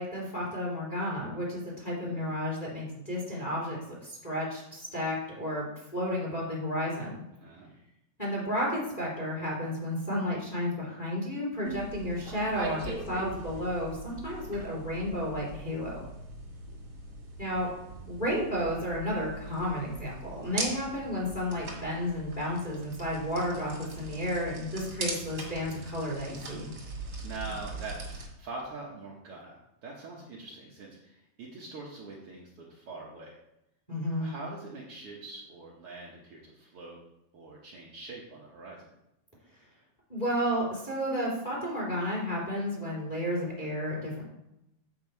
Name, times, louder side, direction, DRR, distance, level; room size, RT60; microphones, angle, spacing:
voice 1, 0.0-7.2 8.2-16.0 17.4-17.7 18.1-26.7 33.9-34.3 40.1-44.3, equal, 10° left, -4 dB, 2.5 m, -32 dB
voice 2, 7.3-7.7 27.2-33.4 34.2-37.0 37.3-38.9, right 3 dB, 85° right, -3 dB, 1.2 m, -43 dB
sound 1, 11.6-28.3, right 3 dB, 40° right, 1.5 m, -41 dB
8.9 x 6.6 x 4.6 m, 0.86 s
omnidirectional pair, 4.4 m